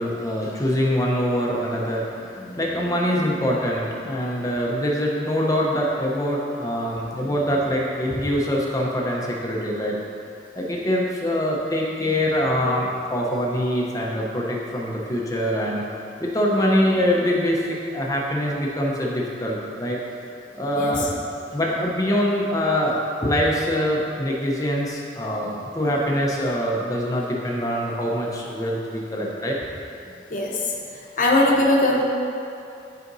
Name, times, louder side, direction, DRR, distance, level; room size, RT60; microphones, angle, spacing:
voice 1, 0.0-10.0 10.6-15.8 16.2-20.0 20.5-29.6, equal, 20° left, -3 dB, 0.8 m, -24 dB
voice 2, 31.2-32.0, left 1 dB, 45° left, -2 dB, 1.0 m, -19 dB
11.0 x 5.1 x 2.7 m, 2.6 s
head